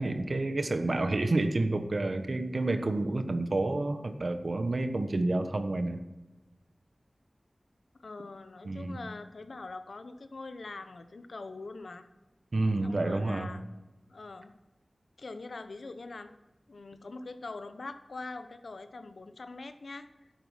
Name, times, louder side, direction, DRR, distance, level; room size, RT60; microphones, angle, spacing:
voice 1, 0.0-6.0 8.6-9.0 12.5-13.5, right 2 dB, 60° right, 8 dB, 1.2 m, -29 dB
voice 2, 7.9-12.1 12.8-13.6 14.1-14.5 15.2-16.3 16.7-20.1, left 3 dB, 85° left, 10 dB, 0.9 m, -43 dB
11.5 x 8.9 x 5.8 m, 1.1 s
wide cardioid pair, 80°, 0 cm